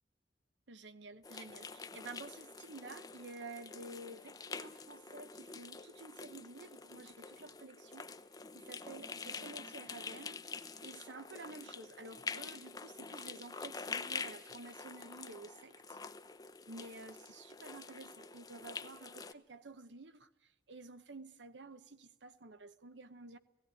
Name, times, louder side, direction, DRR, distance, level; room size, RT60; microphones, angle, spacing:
voice 1, 0.7-8.1 8.5-10.4 10.8-16.0 16.7-20.3 20.7-23.4, right 3 dB, 80° right, 0.9 m, -51 dB
sound 1, 1.2-19.3, left 4 dB, 20° left, 0.6 m, -47 dB
17.5 x 15.5 x 9.7 m
head